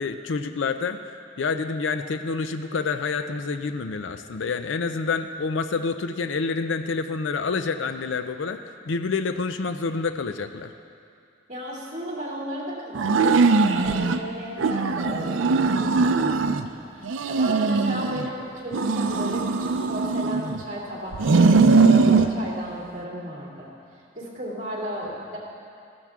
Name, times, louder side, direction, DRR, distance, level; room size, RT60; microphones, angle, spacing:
voice 1, 0.0-10.7, left 4 dB, 80° left, 9 dB, 0.5 m, -28 dB
voice 2, 11.5-23.7 24.1-25.4, equal, 40° right, -5 dB, 2.7 m, -35 dB
sound 1, 12.9-14.2 14.6-16.7 17.0-18.3 18.7-20.6 21.1-22.3, right 4 dB, 85° right, 0.5 m, -20 dB
15.0 x 13.0 x 3.6 m, 2.5 s
head